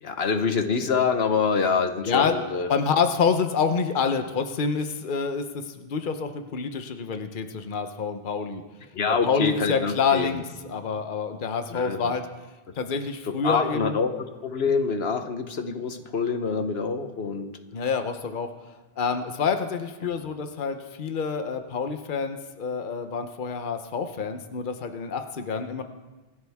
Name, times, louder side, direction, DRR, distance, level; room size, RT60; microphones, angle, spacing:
voice 1, 0.0-2.7 8.9-10.3 11.7-12.1 13.3-14.1 14.4-17.5 20.0-20.1, left 5 dB, 85° left, 7 dB, 1.3 m, -26 dB
voice 2, 2.0-2.3 2.7-8.6 9.1-12.3 12.8-14.0 17.7-18.5 19.0-25.8, left 5 dB, 55° left, 7 dB, 1.0 m, -27 dB
26.0 x 12.5 x 3.6 m, 1.2 s
omnidirectional pair, 1.0 m